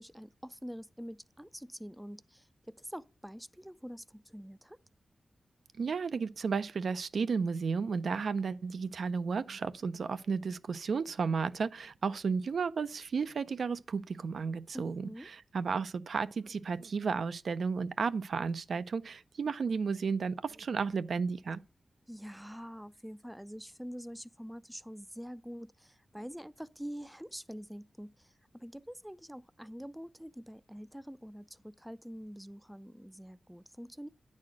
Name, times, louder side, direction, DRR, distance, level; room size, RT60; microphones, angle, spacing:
voice 1, 0.0-4.8 14.7-15.3 22.1-34.1, equal, 5° right, 0.3 m, -46 dB
voice 2, 5.8-21.6, right 5 dB, 75° right, 0.5 m, -33 dB
9.7 x 4.2 x 6.2 m
wide cardioid pair, 115°, 0 cm